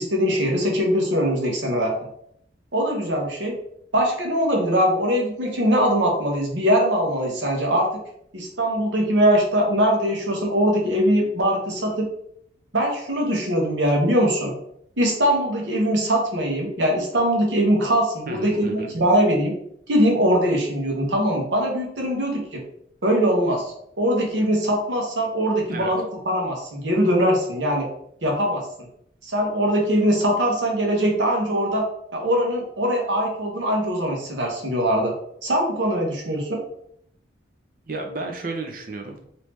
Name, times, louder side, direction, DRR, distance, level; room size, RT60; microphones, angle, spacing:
voice 1, 0.0-1.9 2.7-3.6 3.9-7.9 8.3-12.1 12.7-14.5 15.0-19.5 19.9-22.6 23.0-27.9 28.2-28.7 29.2-31.8 32.1-35.1 35.4-36.6, equal, 75° right, 0 dB, 1.0 m, -22 dB
voice 2, 18.3-18.9 25.7-25.9 37.9-39.2, right 3 dB, 50° right, 4 dB, 0.6 m, -32 dB
3.4 x 2.8 x 3.1 m, 0.71 s
head